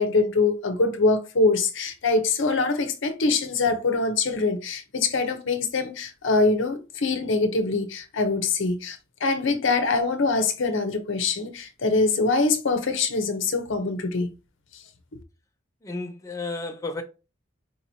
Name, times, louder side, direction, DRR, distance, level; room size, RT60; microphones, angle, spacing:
voice 1, 0.0-14.3, left 3 dB, 65° left, 0.7 m, -24 dB
voice 2, 15.8-17.0, left 3 dB, 15° left, 0.5 m, -32 dB
4.8 x 2.9 x 2.7 m
head